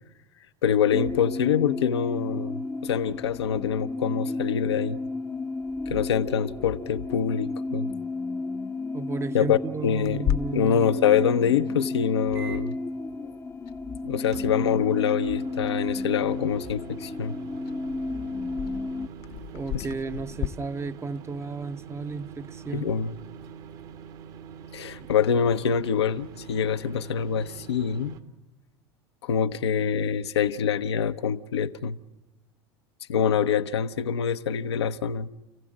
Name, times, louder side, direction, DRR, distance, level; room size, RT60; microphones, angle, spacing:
voice 1, 0.6-5.0 5.9-7.9 9.3-10.2 10.5-12.8 14.0-17.3 19.7-19.9 22.7-23.1 24.7-28.2 29.2-32.0 33.1-35.3, left 8 dB, 80° left, 0.8 m, -25 dB
sound 1, 0.9-19.1, left 3 dB, 15° left, 0.7 m, -33 dB
voice 2, 8.9-10.9 19.5-22.9 25.0-25.1, right 4 dB, 20° right, 0.8 m, -33 dB
Clock, 10.0-20.5, left 11 dB, 50° left, 0.9 m, -37 dB
sound 2, 12.3-12.8 14.3-28.2, right 7 dB, 60° right, 1.9 m, -44 dB
29.5 x 15.5 x 7.3 m
hypercardioid pair, 85°, 14 cm